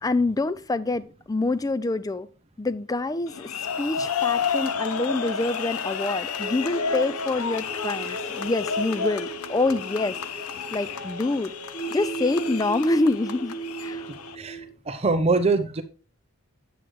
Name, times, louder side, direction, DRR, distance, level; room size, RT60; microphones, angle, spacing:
voice 1, 0.0-2.3 2.6-3.5 3.8-10.2 10.7-11.5 11.9-13.6 13.8-14.1, left 2 dB, 15° left, 0.3 m, -26 dB
sound 1, 3.3-14.3, left 6 dB, 90° left, 0.6 m, -31 dB
sound 2, 6.4-14.7, right 3 dB, 60° left, 3.8 m, -37 dB
voice 2, 14.9-15.8, right 3 dB, 30° right, 0.6 m, -23 dB
7.9 x 7.8 x 3.1 m
head